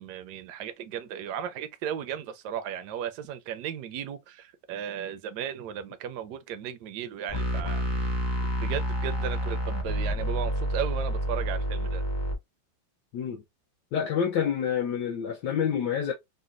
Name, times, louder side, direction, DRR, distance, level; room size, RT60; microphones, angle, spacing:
voice 1, 0.0-7.8 8.6-12.0, right 9 dB, 75° right, 1.1 m, -35 dB
sound 1, 7.3-12.3, equal, 25° left, 0.6 m, -29 dB
voice 2, 13.9-16.1, left 8 dB, 75° left, 1.3 m, -27 dB
3.9 x 2.2 x 2.4 m
omnidirectional pair, 1.9 m